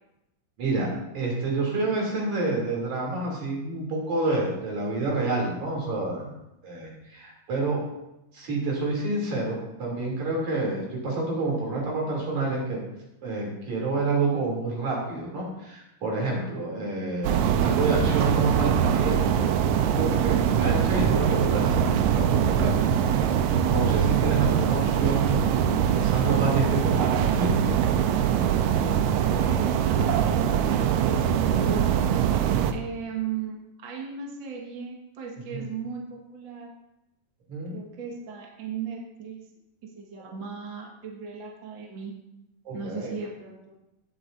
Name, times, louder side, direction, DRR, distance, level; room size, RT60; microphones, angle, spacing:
voice 1, 0.6-0.9 1.1-6.4 6.6-7.8 8.3-12.8 13.2-19.5 19.9-27.1 27.4-28.0 35.5-35.7 37.5-37.8 40.2-40.3 42.7-43.1, right 3 dB, 60° right, -2 dB, 4.1 m, -28 dB
sound 1, 17.2-32.7, right 8 dB, 80° right, 1.9 m, -23 dB
voice 2, 28.7-30.4 30.7-32.1 32.7-36.7 37.7-39.4 39.8-42.1 42.7-43.7, right 6 dB, 45° right, -1 dB, 1.8 m, -37 dB
17.5 x 8.4 x 2.6 m, 0.89 s
omnidirectional pair, 3.7 m